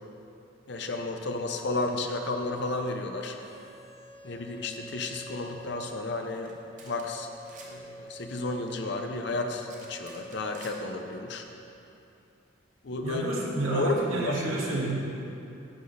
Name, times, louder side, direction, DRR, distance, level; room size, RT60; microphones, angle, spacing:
voice 1, 0.7-3.4 4.2-6.6 6.8-7.3 7.6-11.4 12.8-13.2 13.7-14.3, left 2 dB, 55° left, 5 dB, 0.6 m, -32 dB
sound 1, 3.4-11.4, right 1 dB, 30° left, 1.1 m, -48 dB
sound 2, 6.4-6.5 6.8-7.0 7.3-7.7 9.7-10.8, right 4 dB, 35° right, 1.0 m, -49 dB
voice 2, 13.0-15.0, right 2 dB, 80° right, -4 dB, 1.6 m, -29 dB
10.5 x 6.0 x 4.0 m, 2.8 s
head